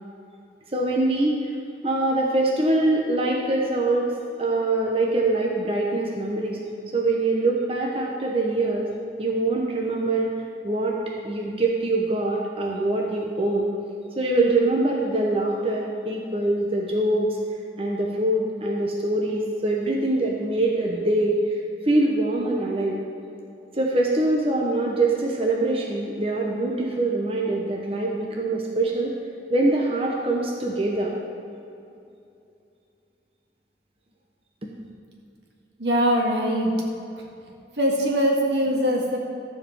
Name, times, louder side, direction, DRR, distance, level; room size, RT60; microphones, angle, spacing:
voice 1, 0.7-1.4 1.8-4.1 4.4-6.6 6.9-8.9 9.2-10.3 10.6-11.0 11.2-13.7 14.2-17.4 17.8-21.4 21.9-23.0 23.7-29.1 29.5-31.1 34.6-34.7, right 2 dB, 35° right, -1 dB, 1.0 m, -23 dB
voice 2, 35.8-36.7 37.8-39.2, equal, 75° right, -1 dB, 1.8 m, -22 dB
13.5 x 4.9 x 7.3 m, 2.6 s
head